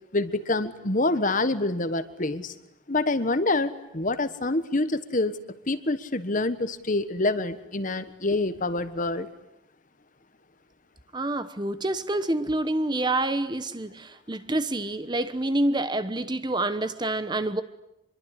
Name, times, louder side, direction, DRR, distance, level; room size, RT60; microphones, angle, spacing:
voice 1, 0.1-2.5 2.9-5.4 5.7-9.3, left 2 dB, 40° left, 1.3 m, -26 dB
voice 2, 11.1-17.6, right 2 dB, 20° right, 1.0 m, -27 dB
26.0 x 23.0 x 9.9 m
head